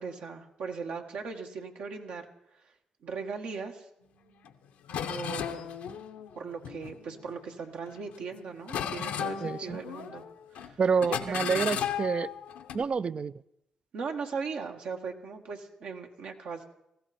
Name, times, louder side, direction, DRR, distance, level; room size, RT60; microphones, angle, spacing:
voice 1, 0.0-2.3 2.5-2.7 3.0-3.9 5.1-5.7 6.4-10.3 10.5-11.9 13.9-16.7, right 5 dB, 80° right, 2 dB, 1.7 m, -38 dB
sound 1, 4.4-4.5 4.9-7.4 7.9-8.3 8.7-10.3 10.5-10.7 11.0-12.8, left 9 dB, 85° left, 0.9 m, -35 dB
voice 2, 9.4-9.8 10.8-12.3 12.7-13.3, right 5 dB, 45° right, 18 dB, 0.4 m, -28 dB
18.5 x 15.0 x 4.3 m, 0.82 s
supercardioid pair, 60°, 2 cm